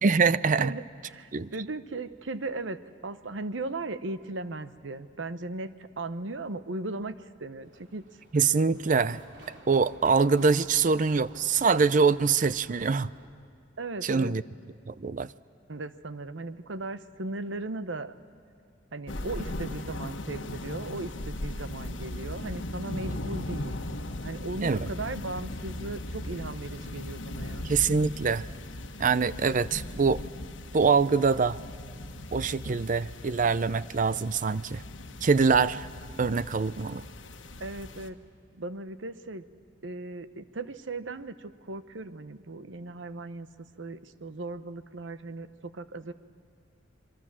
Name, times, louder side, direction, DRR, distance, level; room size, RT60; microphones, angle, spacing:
voice 1, 0.0-0.7 1.3-1.5 8.3-9.2 9.7-13.1 14.0-14.4 14.9-15.3 24.6-24.9 27.6-28.5 29.0-30.2 30.7-31.6 32.3-34.8 35.2-35.9 36.2-37.0, right 5 dB, 45° right, 16 dB, 0.5 m, -24 dB
voice 2, 0.6-5.7 6.0-8.0 13.8-14.3 15.7-18.1 18.9-23.8 24.2-27.7 37.6-38.2 38.5-39.4 39.8-43.5 43.8-46.1, right 2 dB, 90° right, 12 dB, 0.9 m, -37 dB
Run, 7.6-13.2, right 1 dB, 70° right, 3.3 m, -52 dB
sound 1, 19.1-38.1, left 1 dB, 90° left, 1.3 m, -38 dB
26.5 x 22.5 x 7.4 m, 2.4 s
head